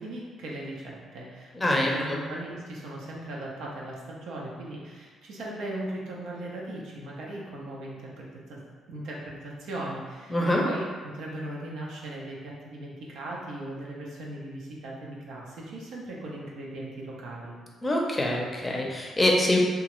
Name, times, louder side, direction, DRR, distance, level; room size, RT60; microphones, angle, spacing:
voice 1, 0.0-8.6 8.9-10.3 10.6-17.5, right 1 dB, 80° right, -3 dB, 0.6 m, -38 dB
voice 2, 1.5-2.2 10.3-10.6 17.8-19.6, left 1 dB, 20° left, -1 dB, 0.6 m, -25 dB
2.8 x 2.3 x 3.0 m, 1.5 s
cardioid pair, 90°, 0 cm